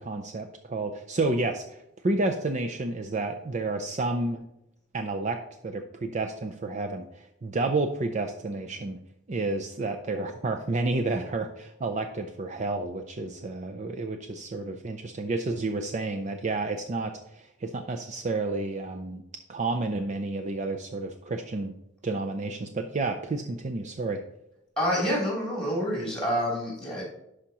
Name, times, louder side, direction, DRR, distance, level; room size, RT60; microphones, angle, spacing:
voice 1, 0.0-1.8 2.0-4.5 4.9-9.0 9.3-19.2 19.5-21.7 22.0-24.2, right 2 dB, 40° right, 5 dB, 0.5 m, -30 dB
voice 2, 24.8-27.0, equal, 5° left, -3 dB, 3.2 m, -27 dB
11.5 x 4.9 x 2.9 m, 0.83 s
head